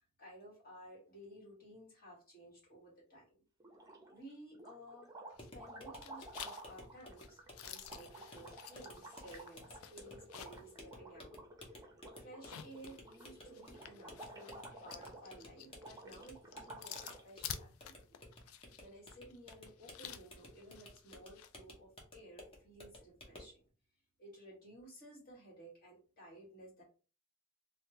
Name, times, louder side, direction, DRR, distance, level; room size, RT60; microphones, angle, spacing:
voice 1, 0.0-3.4 4.1-5.1 5.5-11.9 12.2-18.2 18.5-23.7 24.2-26.8, right 1 dB, 45° left, -3 dB, 1.6 m, -56 dB
sound 1, 3.6-4.2 4.5-17.3, right 2 dB, 15° right, 0.6 m, -53 dB
sound 2, 5.3-5.7 6.0-10.7 11.1-11.2 12.3-21.5, left 9 dB, 75° left, 0.4 m, -51 dB
sound 3, 5.3-23.6, left 1 dB, 25° left, 0.8 m, -56 dB
3.4 x 2.2 x 2.7 m, 0.37 s
head